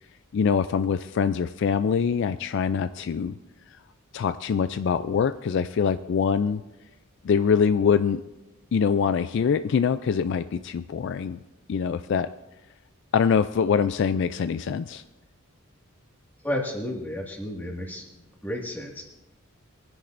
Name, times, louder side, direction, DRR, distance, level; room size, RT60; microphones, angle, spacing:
voice 1, 0.3-3.4 4.1-6.6 7.2-8.2 8.7-11.4 11.7-12.3 13.1-15.0, left 6 dB, 55° left, 11 dB, 0.3 m, -24 dB
voice 2, 16.4-19.0, left 1 dB, 10° left, -1 dB, 1.8 m, -32 dB
22.0 x 10.0 x 2.6 m, 1.0 s
head